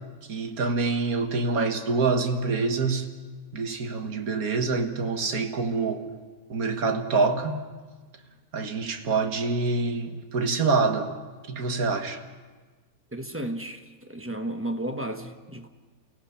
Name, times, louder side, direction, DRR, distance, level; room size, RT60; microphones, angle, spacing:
voice 1, 0.3-3.1 3.5-6.0 6.5-7.6 8.5-11.1 11.5-12.2, right 4 dB, 80° right, 1.9 m, -26 dB
voice 2, 13.1-15.7, right 1 dB, 10° right, 1.0 m, -33 dB
29.0 x 16.0 x 5.7 m
omnidirectional pair, 1.5 m